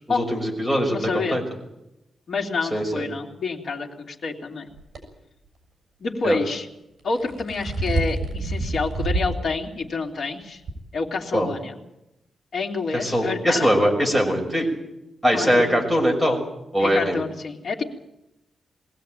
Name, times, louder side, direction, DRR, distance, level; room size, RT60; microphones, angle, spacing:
voice 1, 0.1-1.4 2.7-3.0 6.2-6.4 11.3-11.5 12.9-14.7 15.2-16.4 16.7-17.2, equal, ahead, -1 dB, 5.7 m, -21 dB
voice 2, 0.9-1.4 2.3-4.7 6.0-6.7 7.0-10.6 10.9-11.8 12.5-13.8 15.3-15.7 16.8-17.8, left 4 dB, 55° left, 1 dB, 2.9 m, -28 dB
sound 1, 4.8-5.0 7.0-9.4 9.8-9.9 10.7-10.8, right 2 dB, 50° right, 7.5 m, -27 dB
22.0 x 17.0 x 9.0 m, 0.89 s
wide cardioid pair, 165°, 0 cm